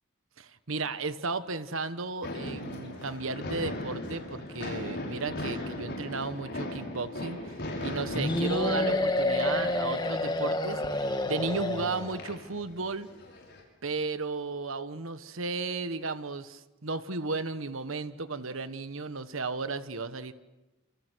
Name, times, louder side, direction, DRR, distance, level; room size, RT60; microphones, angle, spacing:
voice 1, 0.4-13.1 13.8-20.3, right 3 dB, 65° right, 12 dB, 1.3 m, -34 dB
sound 1, 2.2-13.6, left 1 dB, 55° left, 6.9 m, -39 dB
sound 2, 8.1-12.3, left 1 dB, 20° left, 1.8 m, -29 dB
27.5 x 27.5 x 6.3 m, 1.1 s
head